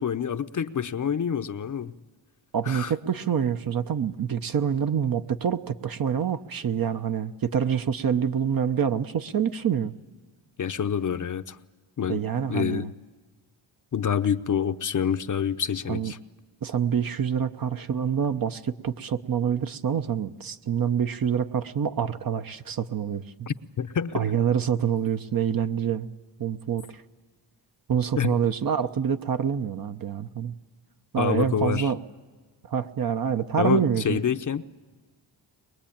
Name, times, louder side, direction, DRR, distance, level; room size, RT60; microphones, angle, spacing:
voice 1, 0.0-1.9 2.6-2.9 10.6-11.6 12.0-12.2 12.5-12.9 13.9-16.2 23.5-24.3 28.2-28.4 31.2-31.9 33.6-34.7, left 8 dB, 40° left, 9 dB, 0.8 m, -27 dB
voice 2, 2.5-9.9 12.1-12.9 15.9-16.1 16.6-23.5 24.1-26.1 26.4-27.0 27.9-30.6 31.1-32.0 32.7-34.2, right 8 dB, 45° right, 9 dB, 0.9 m, -26 dB
22.0 x 21.5 x 8.8 m, 1.4 s
cardioid pair, 65°, 47 cm